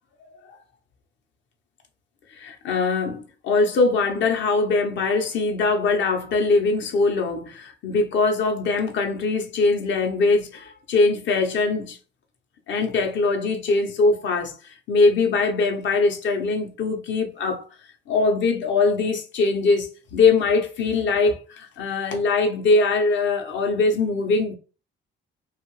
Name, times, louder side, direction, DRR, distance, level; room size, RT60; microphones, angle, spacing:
voice 1, 2.3-12.0 12.7-17.7 18.1-24.5, left 3 dB, 70° left, 0.8 m, -22 dB
2.7 x 2.4 x 3.0 m
cardioid pair, 90°, 20 cm